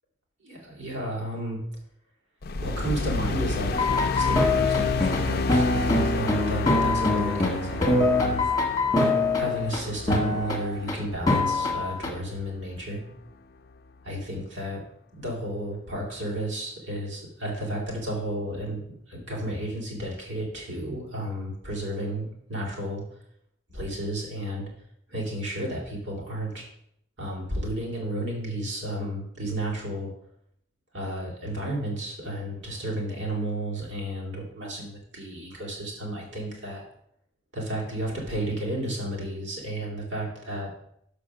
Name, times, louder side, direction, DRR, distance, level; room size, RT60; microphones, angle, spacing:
voice 1, 0.4-1.6 2.6-8.5 9.3-13.0 14.0-14.8 15.2-23.0 23.7-24.7 25.1-26.6 27.2-30.1 30.9-36.8 37.5-40.7, right 1 dB, 75° right, -2 dB, 2.7 m, -32 dB
sound 1, 2.4-12.9, left 3 dB, 50° left, 0.5 m, -31 dB
sound 2, 3.7-9.8 10.1-10.9 11.3-12.1, left 2 dB, 20° left, 1.5 m, -24 dB
6.8 x 5.1 x 5.9 m, 0.71 s
head